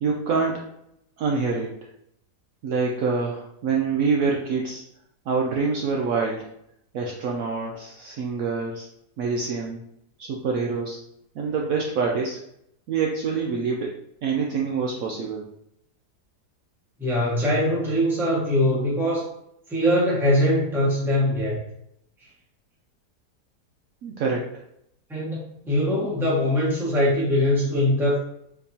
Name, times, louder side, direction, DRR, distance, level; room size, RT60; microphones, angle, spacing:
voice 1, 0.0-0.7 1.2-1.7 2.6-4.8 5.3-6.5 6.9-8.9 9.2-9.8 10.2-11.0 11.4-12.4 12.9-14.0 14.2-15.4 24.0-24.4, right 4 dB, 70° right, -1 dB, 0.8 m, -26 dB
voice 2, 17.0-19.3 19.7-21.6 25.1-28.2, left 1 dB, ahead, -6 dB, 0.8 m, -22 dB
4.4 x 2.8 x 2.7 m, 0.75 s
omnidirectional pair, 1.8 m